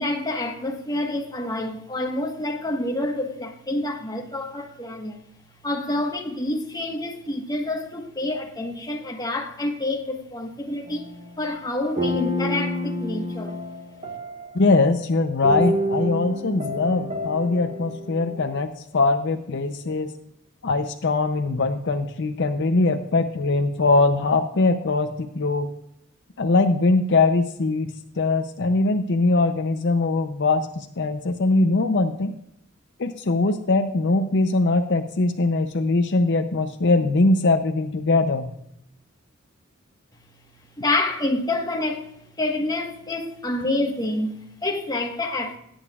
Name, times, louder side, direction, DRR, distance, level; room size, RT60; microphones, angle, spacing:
voice 1, 0.0-5.2 5.6-13.6 40.8-45.6, left 2 dB, 20° left, 1.4 m, -28 dB
sound 1, 10.9-11.3 11.9-14.7 15.4-18.6, equal, 40° right, 1.7 m, -28 dB
voice 2, 14.5-20.1 20.6-25.7 26.4-32.3 33.0-38.5, left 3 dB, 60° left, 0.6 m, -21 dB
18.0 x 8.8 x 2.4 m
head